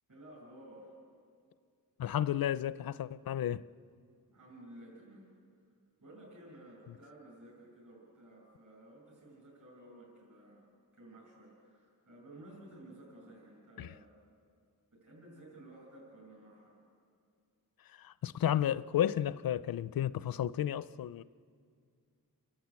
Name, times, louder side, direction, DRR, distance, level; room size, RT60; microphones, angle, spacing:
voice 1, 0.1-0.9 4.3-5.3 6.0-10.7 10.9-14.1 14.9-16.8, right 1 dB, 55° right, 5.9 m, -54 dB
voice 2, 2.0-3.6 13.8-13.9 18.0-21.2, left 11 dB, 70° left, 0.5 m, -32 dB
29.5 x 12.0 x 8.3 m
wide cardioid pair, 150°, 36 cm